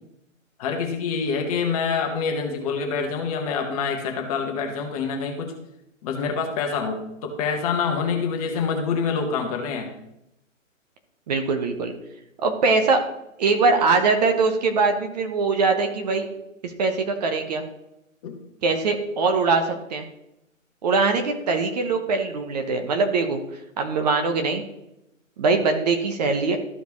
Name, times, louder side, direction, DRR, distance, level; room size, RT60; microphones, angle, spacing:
voice 1, 0.6-5.5 6.0-9.9 18.2-18.4, left 5 dB, 25° left, 3 dB, 1.4 m, -26 dB
voice 2, 11.3-11.9 12.4-13.0 13.4-16.3 16.6-17.6 18.6-20.0 20.8-23.4 23.8-24.6 25.4-26.6, right 4 dB, 30° right, 5 dB, 1.0 m, -22 dB
13.5 x 5.1 x 3.1 m, 0.84 s
figure-of-eight pair, 135°, 40 cm